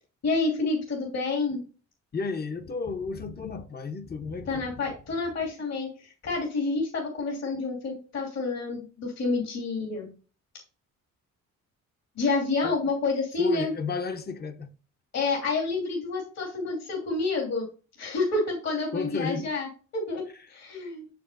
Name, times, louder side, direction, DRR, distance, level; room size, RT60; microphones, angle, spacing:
voice 1, 0.2-1.6 4.5-10.2 12.1-13.7 15.1-17.7 18.0-20.2 20.5-21.1, left 3 dB, 60° left, 2.9 m, -29 dB
voice 2, 2.1-4.7 12.6-12.7 13.4-14.7 18.9-19.5 20.3-20.5, left 4 dB, 30° left, 0.9 m, -32 dB
7.3 x 6.9 x 2.6 m
cardioid pair, 90°, 30 cm